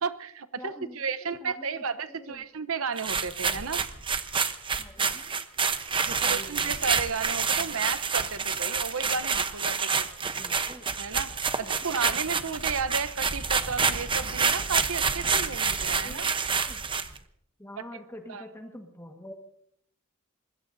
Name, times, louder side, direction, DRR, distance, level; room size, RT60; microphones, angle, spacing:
voice 1, 0.0-3.8 5.9-10.1 11.0-16.3 17.8-17.9 18.3-18.4, right 5 dB, 75° right, 12 dB, 0.9 m, -33 dB
voice 2, 0.6-2.4 4.8-5.4 6.2-6.8 7.6-7.9 10.4-10.9 11.6-12.4 16.0-16.3 16.7-16.8 17.6-19.3, left 1 dB, 15° left, 2 dB, 1.6 m, -46 dB
sound 1, 3.0-17.2, right 5 dB, 25° right, 0.9 m, -28 dB
25.0 x 21.0 x 2.7 m, 0.69 s
head